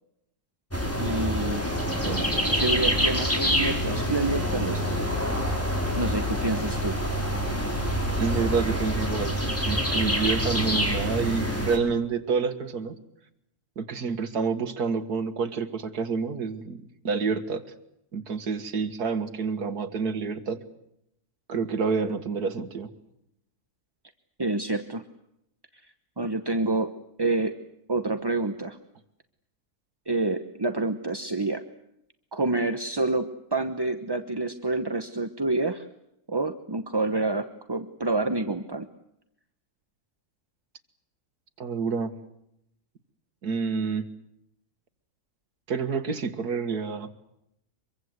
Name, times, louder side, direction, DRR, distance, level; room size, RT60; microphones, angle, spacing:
sound 1, 0.7-11.8, equal, 10° left, 4.5 m, -26 dB
voice 1, 1.0-1.7 2.4-5.1 6.0-7.1 24.4-25.0 25.8-27.6 27.9-28.8 30.1-31.6 32.3-35.9 36.3-38.9, right 2 dB, 20° right, 9 dB, 0.8 m, -28 dB
voice 2, 8.2-13.0 13.8-17.6 18.1-20.7 21.5-22.9 41.6-42.1 43.4-44.1 45.7-47.1, right 5 dB, 90° right, 10 dB, 2.3 m, -28 dB
25.0 x 23.5 x 8.0 m, 0.80 s
omnidirectional pair, 1.6 m